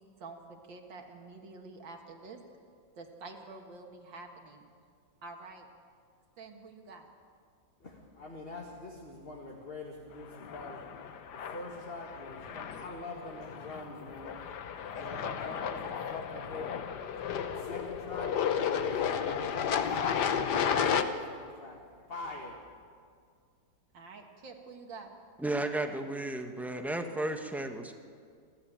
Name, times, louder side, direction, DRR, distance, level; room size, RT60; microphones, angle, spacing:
voice 1, 0.0-2.4 3.0-4.7 5.2-5.7 6.4-7.1 23.9-25.1, right 3 dB, 75° right, 3 dB, 2.5 m, -48 dB
voice 2, 7.8-22.7, left 2 dB, 30° left, 0 dB, 2.0 m, -45 dB
sound 1, 10.3-21.0, left 7 dB, 65° left, 1.5 m, -33 dB
voice 3, 25.4-28.0, right 1 dB, ahead, 5 dB, 1.0 m, -33 dB
28.5 x 12.0 x 8.9 m, 2.2 s
omnidirectional pair, 2.0 m